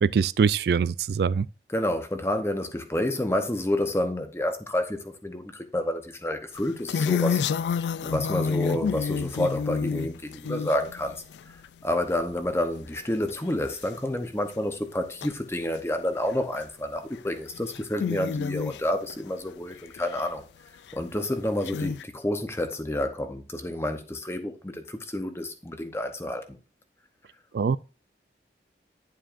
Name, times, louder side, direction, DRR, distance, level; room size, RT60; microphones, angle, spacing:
voice 1, 0.0-1.5 27.5-27.8, right 6 dB, 65° right, 0.3 m, -23 dB
voice 2, 1.7-7.4 8.0-11.2 11.8-20.4 20.9-26.6, left 1 dB, 15° left, 0.8 m, -29 dB
sound 1, 6.6-11.7 12.1-12.5 13.0-13.1 13.3-13.4 13.8-13.9 15.2-15.3 16.3-16.6 17.1-17.2 17.5-19.1 19.7-20.2 20.9-21.0 21.6-22.0, left 6 dB, 80° left, 0.3 m, -29 dB
11.0 x 7.4 x 2.6 m
head